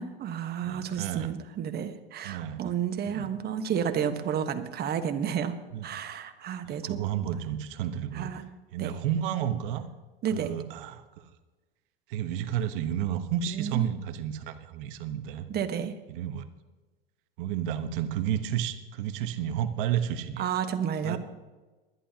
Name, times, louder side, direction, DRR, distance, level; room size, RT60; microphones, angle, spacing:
voice 1, 0.0-5.5 5.8-7.3 8.1-8.4 8.8-9.0 10.2-10.5 13.5-13.9 15.5-16.0 20.4-21.2, right 8 dB, 35° right, 8 dB, 1.3 m, -31 dB
voice 2, 0.6-1.3 2.2-2.6 3.1-3.3 5.7-5.9 6.6-8.3 8.7-9.9 10.3-11.0 12.1-15.5 16.1-16.4 17.4-20.5 21.0-21.2, right 10 dB, 65° right, 9 dB, 1.2 m, -31 dB
21.5 x 11.0 x 2.9 m, 1.2 s
hypercardioid pair, 100°, 29 cm